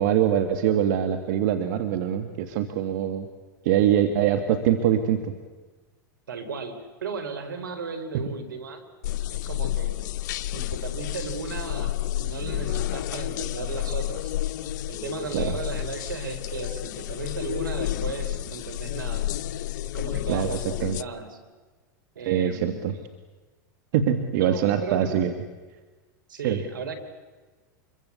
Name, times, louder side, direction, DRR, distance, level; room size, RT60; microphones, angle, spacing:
voice 1, 0.0-3.3 3.6-5.3 8.1-8.3 15.3-15.6 20.3-21.0 22.3-22.9 23.9-25.3 26.4-26.6, right 10 dB, 65° right, 7 dB, 2.0 m, -23 dB
voice 2, 6.3-8.9 9.3-10.0 10.4-14.3 14.9-19.4 19.9-21.4 22.2-22.9 24.4-25.2 26.3-27.0, right 5 dB, 85° right, 9 dB, 3.8 m, -35 dB
sound 1, 9.0-21.0, left 14 dB, 65° left, 0.8 m, -30 dB
27.0 x 23.0 x 8.4 m, 1.3 s
hypercardioid pair, 100°, 10 cm